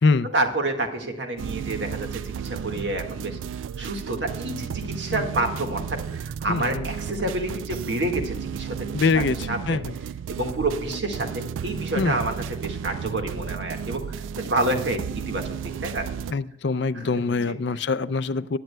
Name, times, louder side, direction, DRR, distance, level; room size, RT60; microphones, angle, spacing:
voice 1, 0.2-3.4 3.8-5.8 6.1-9.8 10.3-14.0 14.4-15.0 15.3-16.0 16.9-17.6, right 2 dB, 65° right, 4 dB, 1.7 m, -28 dB
sound 1, 1.4-16.3, right 7 dB, 80° right, 0.3 m, -33 dB
voice 2, 6.5-6.9 8.9-9.4 9.7-9.9 12.0-12.2 16.3-18.6, left 4 dB, 65° left, 15 dB, 0.5 m, -24 dB
19.5 x 9.1 x 2.3 m, 0.81 s
head